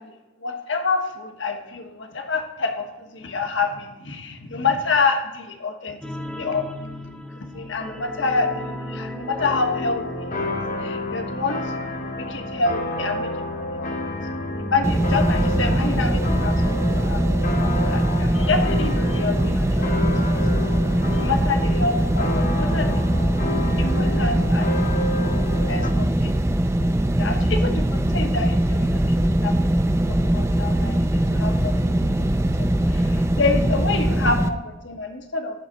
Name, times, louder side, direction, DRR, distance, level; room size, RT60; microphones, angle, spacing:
voice 1, 0.0-6.0 6.4-6.7 7.4-13.9 14.4-17.2 17.5-19.9 20.3-20.7 20.9-23.2 23.8-25.0 25.6-26.3 27.2-29.6 30.1-31.8 32.0-32.3 32.6-35.7, left 4 dB, 70° left, 4 dB, 1.3 m, -28 dB
sound 1, 6.0-19.3 19.6-19.8 20.1-20.2, equal, 5° left, 0.9 m, -35 dB
sound 2, 9.4-25.9, left 2 dB, 45° left, 1.0 m, -30 dB
sound 3, 14.8-34.5, right 1 dB, 15° right, 0.4 m, -21 dB
12.0 x 4.2 x 7.6 m, 1.0 s
head